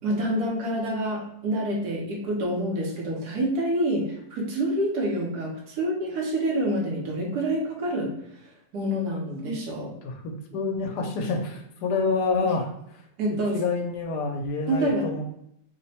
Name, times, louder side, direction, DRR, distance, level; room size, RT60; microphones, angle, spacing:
voice 1, 0.0-8.2 8.7-9.9 13.2-13.6 14.7-15.1, right 1 dB, 75° right, -2 dB, 1.3 m, -27 dB
voice 2, 10.0-13.0 13.5-15.2, left 4 dB, 85° left, 3 dB, 1.2 m, -28 dB
3.3 x 2.1 x 4.1 m, 0.76 s
omnidirectional pair, 1.7 m